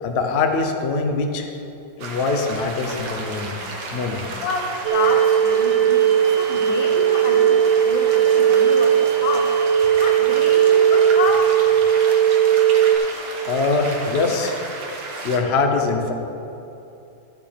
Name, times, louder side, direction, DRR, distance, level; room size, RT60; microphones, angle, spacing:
voice 1, 0.0-1.5 2.0-3.6 3.9-4.3 13.4-14.5 15.2-16.1, left 4 dB, 55° left, 4 dB, 0.7 m, -22 dB
sound 1, 2.0-15.4, right 3 dB, 70° right, 1.9 m, -33 dB
voice 2, 4.4-6.1 6.4-9.5 10.0-11.5, left 3 dB, 85° left, 3 dB, 1.8 m, -28 dB
sound 2, 4.8-13.0, right 9 dB, 90° right, 1.6 m, -17 dB
13.5 x 8.2 x 3.4 m, 2.8 s
omnidirectional pair, 2.1 m